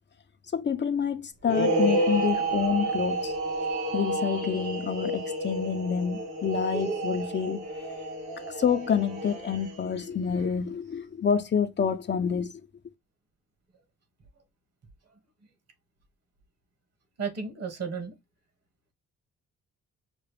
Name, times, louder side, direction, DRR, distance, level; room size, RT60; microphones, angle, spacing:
voice 1, 0.5-3.4 3.9-7.7 8.5-12.6, left 7 dB, 35° left, 0.6 m, -28 dB
sound 1, 1.4-10.0, right 2 dB, 90° right, 2.4 m, -30 dB
voice 2, 17.2-18.1, right 5 dB, 55° right, 2.0 m, -33 dB
5.9 x 2.4 x 3.4 m
cardioid pair, 90°, 30 cm